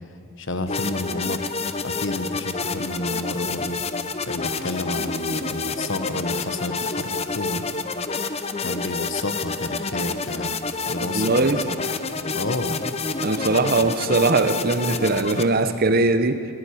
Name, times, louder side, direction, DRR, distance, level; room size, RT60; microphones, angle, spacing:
voice 1, 0.4-1.5 1.8-3.8 4.3-7.6 8.6-10.5 10.9-11.3 12.3-12.8 13.8-13.9, left 2 dB, 55° left, 10 dB, 1.1 m, -30 dB
sound 1, 0.7-15.4, left 4 dB, 30° left, 0.7 m, -28 dB
voice 2, 11.0-11.7 13.2-16.5, right 3 dB, 40° right, 10 dB, 0.9 m, -21 dB
21.0 x 16.5 x 8.5 m, 2.5 s
head